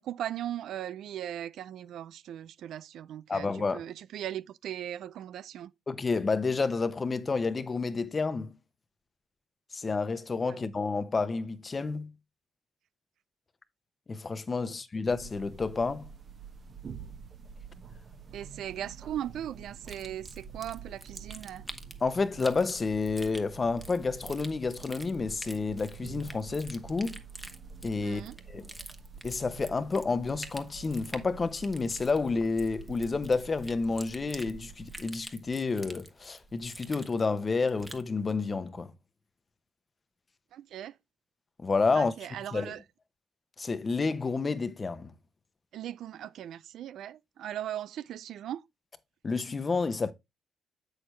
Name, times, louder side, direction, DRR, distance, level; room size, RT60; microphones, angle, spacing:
voice 1, 0.0-5.7 10.5-10.6 14.6-14.7 18.3-21.6 28.0-28.4 40.5-41.0 41.9-42.8 45.7-48.6, right 11 dB, 75° right, 0.3 m, -38 dB
voice 2, 3.3-3.8 5.9-8.5 9.7-12.1 14.1-16.1 22.0-27.2 27.8-28.2 28.5-28.7 29.2-38.9 41.6-42.1 42.5-42.7 43.6-45.1 49.2-50.1, left 4 dB, 30° left, 0.9 m, -30 dB
sound 1, 15.1-35.0, right 6 dB, 45° right, 1.1 m, -48 dB
sound 2, 19.8-38.1, right 1 dB, 10° right, 1.1 m, -48 dB
7.7 x 6.5 x 3.1 m
cardioid pair, 90°, 0 cm